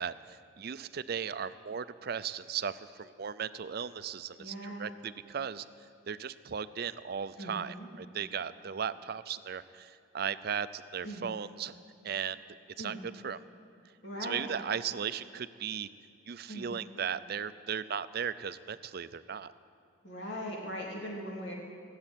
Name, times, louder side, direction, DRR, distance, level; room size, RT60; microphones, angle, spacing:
voice 1, 0.0-5.7 6.1-11.8 12.0-12.4 12.8-13.4 14.2-15.9 16.3-19.5, right 7 dB, 50° right, 14 dB, 0.4 m, -37 dB
voice 2, 4.4-4.9 7.4-7.9 11.0-11.3 12.8-13.0 14.0-14.5 16.5-16.7 20.0-21.5, equal, 60° left, -3 dB, 3.0 m, -40 dB
19.0 x 7.7 x 9.1 m, 2.4 s
head